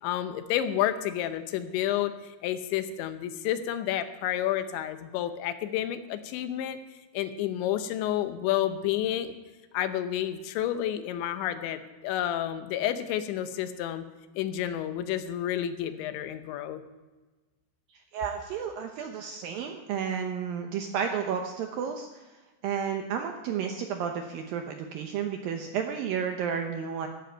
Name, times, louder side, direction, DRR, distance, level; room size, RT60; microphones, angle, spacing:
voice 1, 0.0-6.8 7.1-9.3 9.7-14.0 14.4-16.8, left 11 dB, 85° left, 10 dB, 3.2 m, -30 dB
voice 2, 17.9-22.4 22.6-27.1, right 7 dB, 75° right, 4 dB, 2.1 m, -32 dB
15.5 x 13.0 x 4.5 m, 1.2 s
omnidirectional pair, 5.2 m